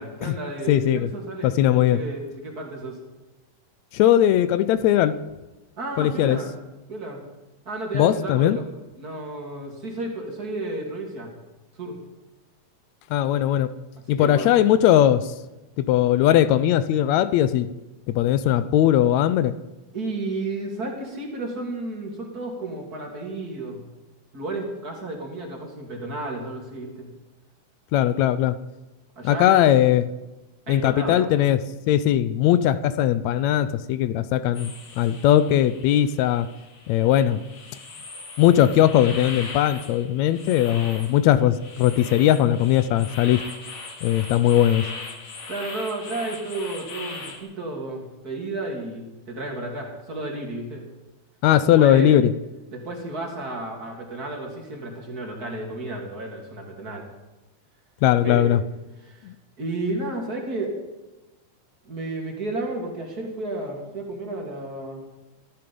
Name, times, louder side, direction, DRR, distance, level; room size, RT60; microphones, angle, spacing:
voice 1, 0.0-3.0 5.8-6.5 6.9-7.2 7.7-8.6 9.0-11.3 11.8-12.0 14.1-14.5 19.9-23.8 24.3-27.1 29.2-29.7 30.7-31.4 45.5-50.8 51.8-52.2 52.7-57.0 58.2-58.5 59.0-59.3 59.6-60.7 61.8-65.0, right 2 dB, 30° right, 1 dB, 2.6 m, -32 dB
voice 2, 0.7-1.1 1.4-2.0 3.9-5.2 6.0-6.4 7.9-8.6 13.1-13.7 14.1-15.3 15.8-17.7 18.1-19.5 27.9-28.6 29.2-30.1 30.7-31.6 31.9-36.5 36.9-37.4 38.4-43.4 44.0-44.9 51.4-52.3 58.0-58.6 59.3-59.4, left 11 dB, 80° left, 15 dB, 1.7 m, -19 dB
sound 1, 34.5-47.4, left 3 dB, 55° left, 3.1 m, -40 dB
14.0 x 13.0 x 5.3 m, 1.0 s
omnidirectional pair, 3.5 m